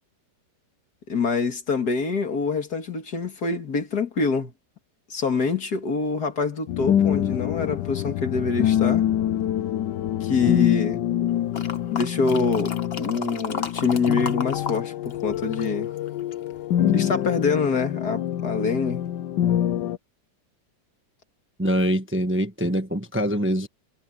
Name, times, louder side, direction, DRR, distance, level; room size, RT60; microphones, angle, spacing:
voice 1, 1.1-4.5 5.1-9.0 10.2-11.1 11.9-15.9 16.9-19.0, left 4 dB, 60° left, 2.7 m, -25 dB
sound 1, 6.7-20.0, left 11 dB, 75° left, 1.3 m, -25 dB
sound 2, 11.5-14.8 15.1-16.5 17.0-17.1, left 5 dB, 35° left, 1.3 m, -33 dB
voice 2, 21.6-23.7, equal, 10° right, 1.0 m, -24 dB
omnidirectional pair, 2.0 m